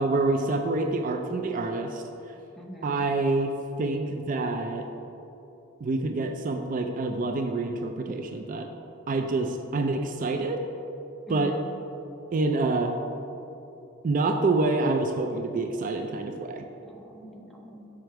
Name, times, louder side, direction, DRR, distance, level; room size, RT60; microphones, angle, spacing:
voice 1, 0.0-2.0 2.8-3.5 3.8-4.9 5.8-8.7 9.1-10.7 11.3-11.5 12.3-13.0 14.0-16.6, right 3 dB, 40° right, 5 dB, 0.4 m, -27 dB
voice 2, 2.6-3.0 11.3-11.7 16.8-17.9, equal, ahead, 0 dB, 0.6 m, -43 dB
6.3 x 5.8 x 4.5 m, 2.9 s
head